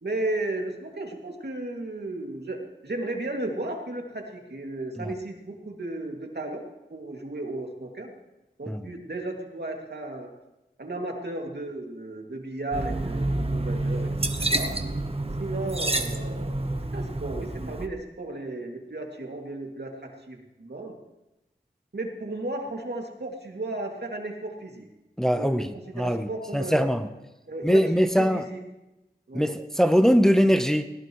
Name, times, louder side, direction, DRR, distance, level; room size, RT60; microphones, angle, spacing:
voice 1, 0.0-6.6 6.9-8.1 8.6-10.3 10.8-14.1 14.4-14.7 15.4-21.0 21.9-24.9 25.2-25.6 25.9-26.9 27.5-28.6 29.3-29.5, right 2 dB, 70° right, 2.5 m, -34 dB
sound 1, 12.7-17.9, right 2 dB, 35° right, 1.1 m, -28 dB
voice 2, 25.2-27.1 27.6-28.4 29.3-30.8, equal, 5° left, 0.8 m, -22 dB
20.5 x 17.5 x 3.1 m
wide cardioid pair, 60°, 18 cm